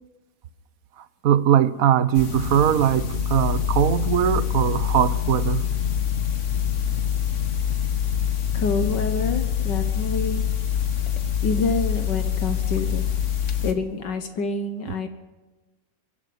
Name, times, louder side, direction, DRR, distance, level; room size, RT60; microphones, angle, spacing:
voice 1, 1.2-5.6, right 10 dB, 60° right, 1.2 m, -20 dB
sound 1, 2.1-13.7, left 9 dB, 45° left, 1.8 m, -25 dB
voice 2, 8.5-10.5 11.4-13.0 13.6-15.1, left 3 dB, 75° left, 2.0 m, -27 dB
24.0 x 11.5 x 9.5 m
omnidirectional pair, 1.9 m